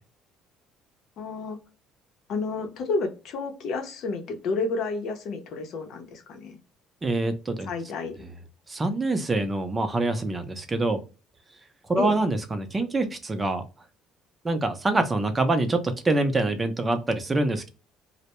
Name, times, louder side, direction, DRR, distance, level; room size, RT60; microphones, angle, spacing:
voice 1, 1.2-1.6 2.3-6.6 7.6-8.1 12.0-12.2, left 3 dB, 65° left, 4 dB, 0.7 m, -30 dB
voice 2, 7.0-7.7 8.7-11.0 11.9-13.6 14.4-17.7, right 2 dB, 25° right, 8 dB, 0.5 m, -25 dB
2.1 x 2.1 x 2.9 m, 0.32 s
supercardioid pair, 80°, 0 cm